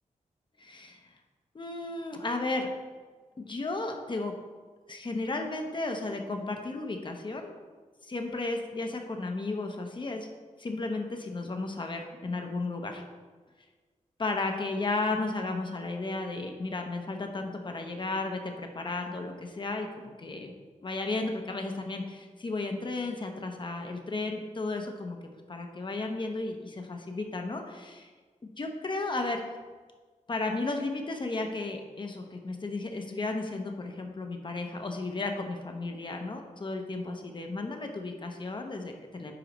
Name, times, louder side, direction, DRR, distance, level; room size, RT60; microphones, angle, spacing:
voice 1, 0.6-1.1 1.5-2.7 3.4-4.3 4.9-7.6 8.1-10.3 10.6-13.0 14.2-20.5 20.8-25.2 25.5-28.1 28.6-29.4 30.3-39.3, left 3 dB, 35° left, 4 dB, 0.9 m, -34 dB
10.0 x 4.8 x 3.1 m, 1.4 s
wide cardioid pair, 105°, 13 cm